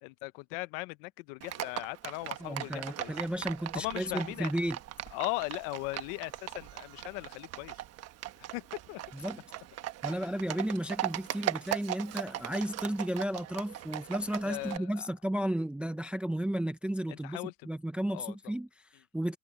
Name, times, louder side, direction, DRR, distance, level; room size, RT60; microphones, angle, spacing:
voice 1, 0.0-3.1 3.7-4.5 5.1-7.7 8.5-9.1 10.1-10.2 14.4-15.1 17.1-17.5 18.1-18.3, left 24 dB, 55° left, 0.8 m, -38 dB
Livestock farm animals working animals, 1.4-14.8, right 13 dB, 30° right, 1.1 m, -39 dB
voice 2, 2.4-4.8 9.1-9.4 10.0-19.4, right 1 dB, 5° right, 0.5 m, -33 dB
supercardioid pair, 155°, 46 cm